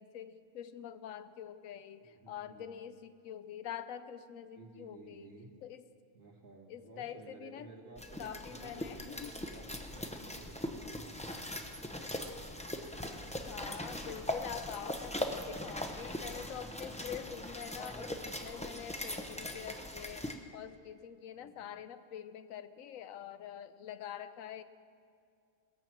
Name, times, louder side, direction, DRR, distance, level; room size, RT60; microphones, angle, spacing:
voice 1, 0.0-5.3 5.6-5.8 6.7-7.7 8.2-9.5 13.3-24.6, left 9 dB, 85° left, 12 dB, 1.0 m, -45 dB
voice 2, 2.0-2.7 4.5-5.5 6.1-11.0 21.3-21.8, right 3 dB, 80° right, -1 dB, 2.2 m, -54 dB
sound 1, 8.0-20.3, left 1 dB, 10° left, 0.5 m, -40 dB
20.0 x 7.7 x 6.0 m, 2.3 s
omnidirectional pair, 1.4 m